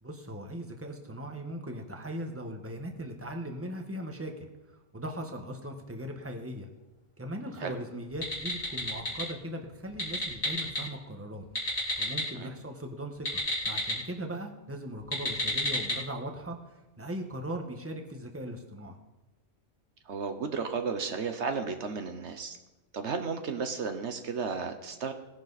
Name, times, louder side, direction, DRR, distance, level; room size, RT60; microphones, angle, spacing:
voice 1, 0.0-6.7 7.2-11.4 12.0-18.9, right 1 dB, 10° right, 3 dB, 1.4 m, -39 dB
sound 1, 8.1-9.3 9.9-10.8 11.4-12.2 13.1-14.0 15.0-16.0, left 1 dB, 70° left, 3.8 m, -31 dB
voice 2, 20.1-22.6 22.9-25.1, right 5 dB, 75° right, 7 dB, 1.3 m, -33 dB
18.0 x 11.0 x 4.1 m, 1.1 s
omnidirectional pair, 1.2 m